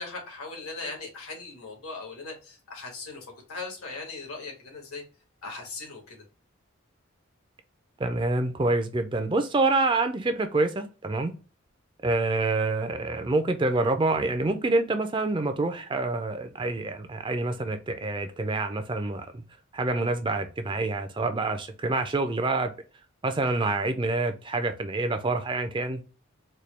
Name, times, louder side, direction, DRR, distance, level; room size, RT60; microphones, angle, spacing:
voice 1, 0.0-5.0 5.4-6.2, left 3 dB, 90° left, 0 dB, 1.8 m, -39 dB
voice 2, 8.0-11.3 12.0-19.4 19.7-22.7 23.2-26.0, right 2 dB, 20° right, 8 dB, 0.3 m, -27 dB
4.3 x 2.2 x 3.2 m, 0.34 s
head